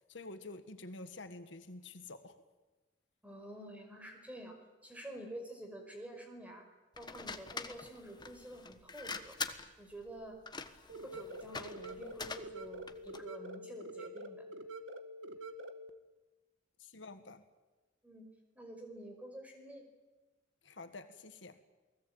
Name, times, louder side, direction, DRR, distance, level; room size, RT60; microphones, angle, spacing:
voice 1, 0.1-2.4 16.8-17.4 20.6-21.6, left 2 dB, 65° left, 8 dB, 1.7 m, -48 dB
voice 2, 3.2-4.6 4.8-6.7 7.0-9.4 9.8-10.4 11.0-14.4 18.0-18.2 18.6-19.9, right 1 dB, 10° right, 3 dB, 5.2 m, -48 dB
sound 1, 6.9-13.3, left 4 dB, 25° left, 1.3 m, -45 dB
sound 2, 10.9-15.9, right 1 dB, 75° right, 1.8 m, -46 dB
29.0 x 19.5 x 8.9 m, 1.2 s
head